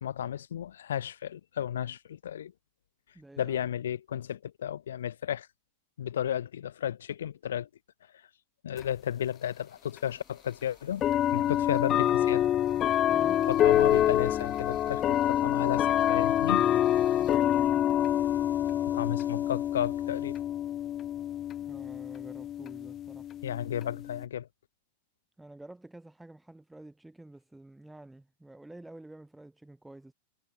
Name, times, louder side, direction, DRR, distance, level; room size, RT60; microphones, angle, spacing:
voice 1, 0.0-2.5 3.4-5.5 6.0-7.7 8.6-11.0 11.3-12.5 13.5-16.7 18.9-20.4 23.4-24.5, left 10 dB, 65° left, 0.7 m, -33 dB
voice 2, 3.1-3.6 13.1-13.5 17.2-17.8 19.0-19.1 21.6-23.3 25.4-30.1, right 2 dB, 5° right, 5.8 m, -49 dB
sound 1, 8.8-8.9 10.0-10.1 11.0-24.2, left 11 dB, 30° left, 0.4 m, -27 dB
sound 2, 9.0-15.2, right 6 dB, 70° right, 7.7 m, -69 dB
sound 3, 13.3-20.6 20.8-20.9, left 1 dB, 90° left, 5.1 m, -59 dB
figure-of-eight pair, 90°, 0 cm